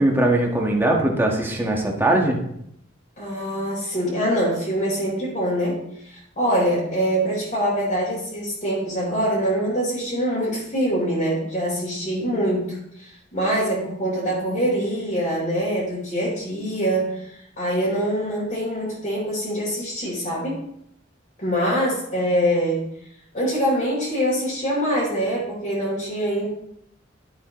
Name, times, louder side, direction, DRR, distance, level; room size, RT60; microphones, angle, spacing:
voice 1, 0.0-2.4, right 1 dB, 10° right, 0 dB, 1.6 m, -20 dB
voice 2, 3.2-5.8 6.0-20.6 21.4-22.8 23.3-26.5, equal, 40° left, -7 dB, 4.4 m, -24 dB
12.0 x 8.6 x 3.1 m, 0.74 s
head